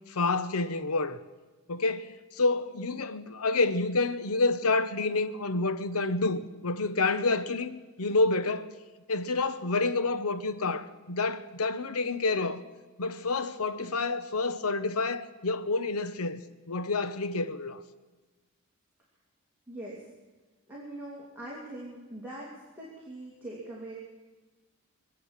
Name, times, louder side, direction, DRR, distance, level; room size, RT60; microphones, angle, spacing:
voice 1, 0.1-1.2 1.7-8.7 9.1-12.6 13.0-16.4 16.7-17.8, left 3 dB, 85° left, 0.9 m, -28 dB
voice 2, 19.7-20.1 20.7-23.9, right 1 dB, 10° right, 2.5 m, -42 dB
23.0 x 8.1 x 7.3 m
head